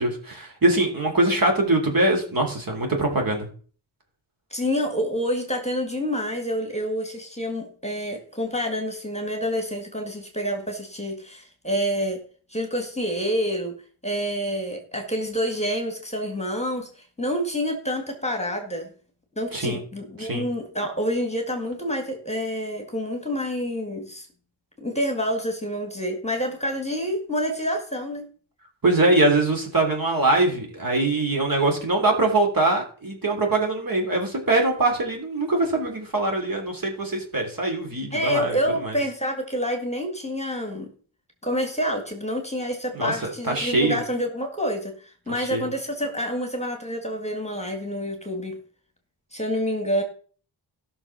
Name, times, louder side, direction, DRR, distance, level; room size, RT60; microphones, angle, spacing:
voice 1, 0.0-3.5 19.5-19.8 20.2-20.4 28.8-39.0 42.9-44.0 45.4-45.7, right 2 dB, 45° right, 2 dB, 3.3 m, -23 dB
voice 2, 4.5-12.2 12.5-13.7 14.0-16.9 17.2-18.9 19.4-24.3 24.8-28.2 38.1-40.9 41.4-48.6 49.3-50.0, equal, 15° left, 4 dB, 2.0 m, -28 dB
15.0 x 6.2 x 6.0 m, 0.43 s
wide cardioid pair, 125°, 46 cm